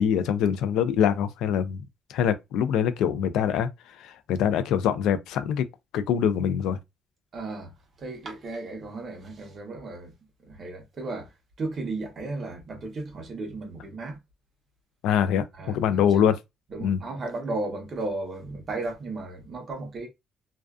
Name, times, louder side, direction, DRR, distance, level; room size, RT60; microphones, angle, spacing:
voice 1, 0.0-1.8 2.1-3.7 4.0-5.7 5.9-6.8 15.0-16.4 16.8-17.0, left 8 dB, 90° left, 0.3 m, -24 dB
voice 2, 7.3-7.7 8.0-10.1 10.4-11.3 11.6-14.2 15.5-16.2 16.7-20.1, right 2 dB, 35° right, 0.8 m, -35 dB
2.4 x 2.3 x 2.3 m
cardioid pair, 155°, 0 cm